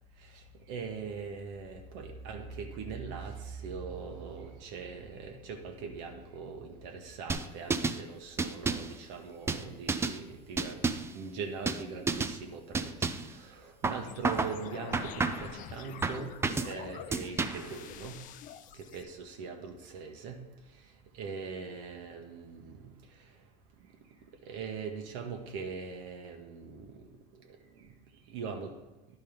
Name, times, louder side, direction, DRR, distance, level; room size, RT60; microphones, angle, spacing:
voice 1, 0.2-10.8 11.1-18.2 18.8-20.4 21.1-23.0 24.4-27.1 27.5-27.6 28.3-28.7, right 5 dB, 65° right, 3 dB, 1.2 m, -41 dB
sound 1, 7.3-8.0 8.4-8.9 9.5-10.2 10.6-11.1 11.7-11.8 12.1-12.4 12.7-13.3 13.8-14.6 14.9-15.5 16.0-16.7 17.1-17.7, right 4 dB, 15° right, 0.4 m, -31 dB
sound 2, 14.0-19.0, left 10 dB, 40° left, 0.5 m, -46 dB
10.5 x 4.3 x 5.1 m, 1.0 s
supercardioid pair, 110°, 20 cm